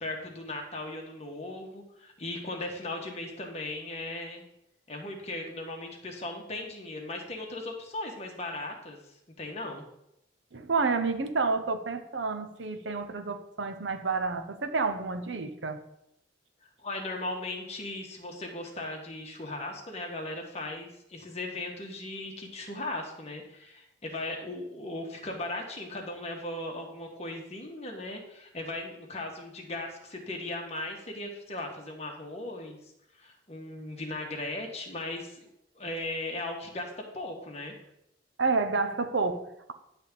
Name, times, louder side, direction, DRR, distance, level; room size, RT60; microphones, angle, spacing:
voice 1, 0.0-4.4 4.9-9.0 9.4-9.8 16.8-32.8 33.2-35.5 35.7-37.7, left 2 dB, 35° left, 1.5 m, -37 dB
voice 2, 10.5-15.8 38.4-39.7, right 4 dB, 70° right, 0.8 m, -29 dB
10.5 x 3.6 x 6.8 m
head